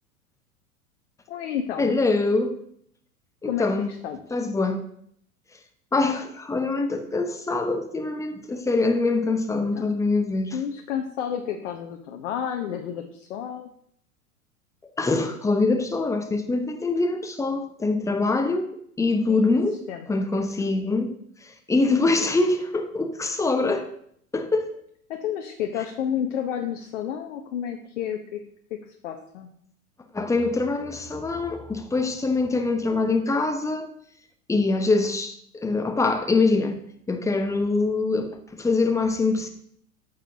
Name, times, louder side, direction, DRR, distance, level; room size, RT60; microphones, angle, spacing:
voice 1, 1.3-2.0 3.5-4.2 9.5-9.9 10.5-13.7 18.2-18.3 19.3-19.6 19.9-20.1 25.1-28.4 28.7-29.5, left 9 dB, 55° left, 1.0 m, -31 dB
voice 2, 1.8-2.6 3.4-3.9 4.3-4.8 5.9-10.6 15.0-19.8 20.1-21.1 21.4-23.9 24.3-24.7 30.1-33.9 34.5-36.8 37.1-39.5, left 3 dB, 5° left, 0.9 m, -24 dB
13.0 x 6.7 x 2.8 m
figure-of-eight pair, 90°, 44 cm